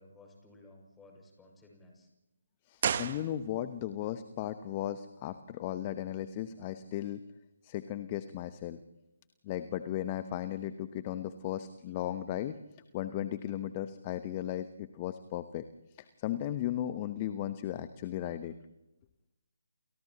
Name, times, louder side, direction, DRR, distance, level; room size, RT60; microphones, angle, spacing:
voice 1, 0.0-2.1, left 2 dB, 10° left, 0 dB, 6.5 m, -57 dB
voice 2, 2.7-7.2 7.6-8.8 9.4-12.5 12.9-15.6 16.2-18.5, left 12 dB, 25° left, 11 dB, 0.9 m, -36 dB
sound 1, 2.8-3.9 4.1-4.2, right 8 dB, 40° right, 1.1 m, -34 dB
30.0 x 28.5 x 3.1 m, 0.90 s
figure-of-eight pair, 145°, 0 cm